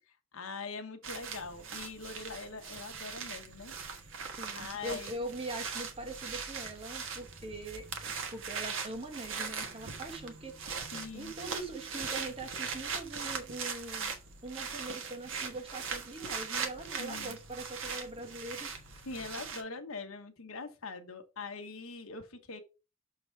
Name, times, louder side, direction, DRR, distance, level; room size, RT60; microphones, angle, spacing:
voice 1, 0.3-3.7 4.6-5.1 10.9-11.3 17.0-17.3 19.0-22.6, left 4 dB, 75° left, 1.2 m, -42 dB
sound 1, 1.0-19.6, right 5 dB, 65° right, 1.4 m, -40 dB
voice 2, 4.4-10.8 11.1-14.1 14.4-19.0, right 2 dB, 30° right, 1.6 m, -42 dB
6.6 x 3.9 x 4.6 m
head